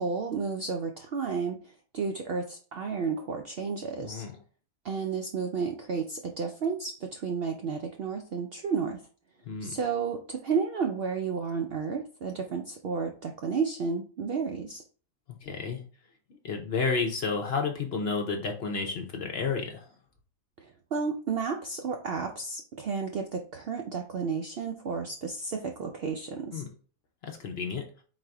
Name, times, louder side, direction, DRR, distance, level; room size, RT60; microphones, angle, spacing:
voice 1, 0.0-4.3 4.8-9.0 9.6-14.8 20.6-26.6, right 5 dB, 70° right, 3 dB, 0.6 m, -32 dB
voice 2, 4.0-4.3 9.5-9.8 15.4-15.8 16.3-19.9 26.5-26.7 27.2-27.9, left 4 dB, 55° left, 3 dB, 0.8 m, -31 dB
4.0 x 2.6 x 4.6 m, 0.39 s
omnidirectional pair, 1.5 m